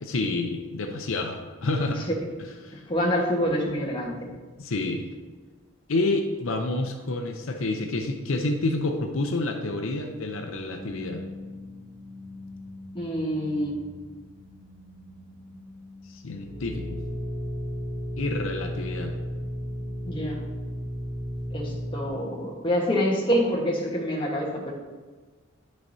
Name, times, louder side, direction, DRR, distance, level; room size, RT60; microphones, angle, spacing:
voice 1, 0.0-2.0 2.6-2.8 4.6-5.1 5.9-11.2 16.1-17.0 18.2-19.1 21.7-21.8, left 2 dB, 70° left, 4 dB, 0.6 m, -28 dB
voice 2, 2.9-4.1 12.9-13.8 20.0-20.4 21.5-24.7, equal, 25° left, -2 dB, 1.2 m, -26 dB
sound 1, 10.7-22.1, equal, 60° right, 1.1 m, -36 dB
10.0 x 6.3 x 2.7 m, 1.4 s
head